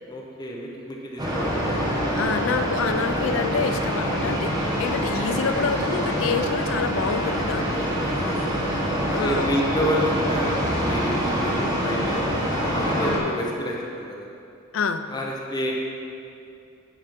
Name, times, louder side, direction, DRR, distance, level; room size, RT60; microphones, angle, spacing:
voice 1, 0.1-2.2 7.7-8.6 9.1-12.3 12.7-14.3 15.1-15.7, equal, 20° left, -2 dB, 0.7 m, -29 dB
sound 1, 1.2-13.2, equal, 20° right, 1.1 m, -25 dB
voice 2, 2.1-4.5 4.8-7.9 9.1-9.5 13.0-13.2 14.7-15.1, left 5 dB, 65° left, 9 dB, 0.4 m, -27 dB
9.2 x 4.3 x 5.2 m, 2.5 s
head